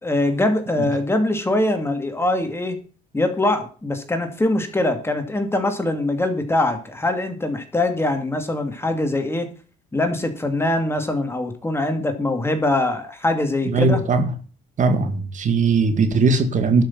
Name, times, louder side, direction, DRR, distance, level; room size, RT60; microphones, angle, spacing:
voice 1, 0.0-2.8 3.1-9.5 9.9-14.0, left 2 dB, 15° left, 6 dB, 2.5 m, -22 dB
voice 2, 13.7-14.3 14.8-16.8, right 4 dB, 50° right, 7 dB, 2.1 m, -19 dB
12.0 x 6.6 x 7.4 m, 0.38 s
cardioid pair, 110°, 17 cm